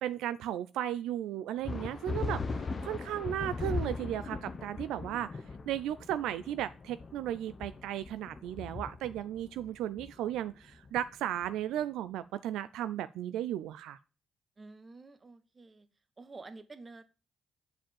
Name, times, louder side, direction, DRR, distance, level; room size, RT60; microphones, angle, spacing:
voice 1, 0.0-5.3 5.7-14.0, right 11 dB, 85° right, 14 dB, 0.3 m, -35 dB
sound 1, 1.6-11.6, left 3 dB, 40° left, 1.1 m, -39 dB
voice 2, 14.6-15.9 16.2-17.0, right 3 dB, 35° right, 11 dB, 1.3 m, -49 dB
7.4 x 5.0 x 7.1 m, 0.33 s
supercardioid pair, 60°, 0 cm